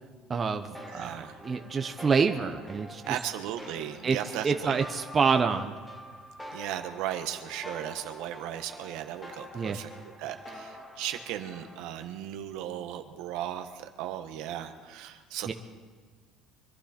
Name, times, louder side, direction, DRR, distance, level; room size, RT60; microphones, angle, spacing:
voice 1, 0.3-3.0 4.0-4.2 4.4-5.8 9.5-9.8 15.5-15.6, right 5 dB, 25° right, 6 dB, 0.8 m, -27 dB
sound 1, 0.7-12.0, equal, 10° left, 1.4 m, -46 dB
voice 2, 0.9-1.4 3.0-4.8 6.5-9.9 10.2-15.5, right 11 dB, 70° right, 7 dB, 1.3 m, -36 dB
24.5 x 12.0 x 4.4 m, 1.5 s
cardioid pair, 150°, 0 cm